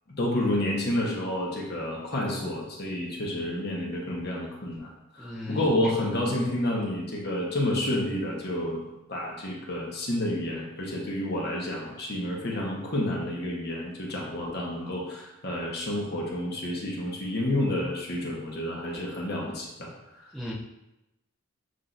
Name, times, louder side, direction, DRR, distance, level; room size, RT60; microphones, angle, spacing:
voice 1, 0.2-8.8 9.1-19.9, left 1 dB, 55° left, -2 dB, 1.0 m, -30 dB
voice 2, 5.2-5.8 20.3-20.5, left 1 dB, ahead, -8 dB, 0.6 m, -37 dB
7.5 x 2.8 x 2.5 m, 0.92 s
head